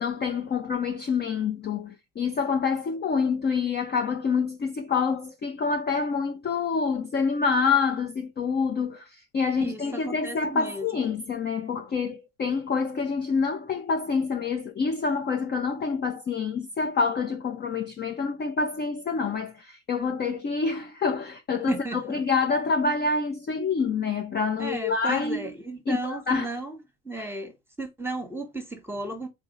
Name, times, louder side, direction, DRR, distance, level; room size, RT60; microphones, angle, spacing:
voice 1, 0.0-9.1 9.3-25.5 25.9-26.5 27.1-27.3, left 5 dB, 20° left, 0.6 m, -27 dB
voice 2, 9.6-10.9 21.7-22.2 24.6-26.8 27.0-27.5 27.8-29.3, right 2 dB, 5° right, 1.1 m, -34 dB
3.9 x 2.7 x 3.9 m
hypercardioid pair, 75°, 47 cm